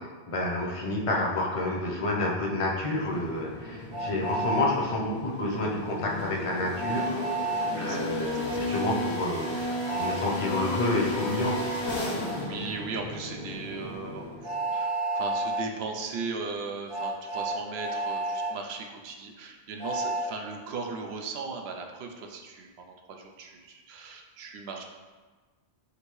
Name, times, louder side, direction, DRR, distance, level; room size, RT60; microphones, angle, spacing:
voice 1, 0.3-7.4 7.7-11.6, left 2 dB, 35° left, -2 dB, 0.7 m, -29 dB
sound 1, 2.8-14.6, left 1 dB, 80° left, 1.4 m, -34 dB
Train, 3.9-4.7 6.8-7.8 9.8-10.2 12.2-12.4 14.4-15.7 16.9-18.5 19.8-20.3, right 2 dB, 60° right, 1.2 m, -30 dB
voice 2, 7.6-8.8 12.0-24.8, right 4 dB, 80° right, 2 dB, 0.8 m, -38 dB
5.3 x 2.6 x 3.1 m, 1.3 s
omnidirectional pair, 1.0 m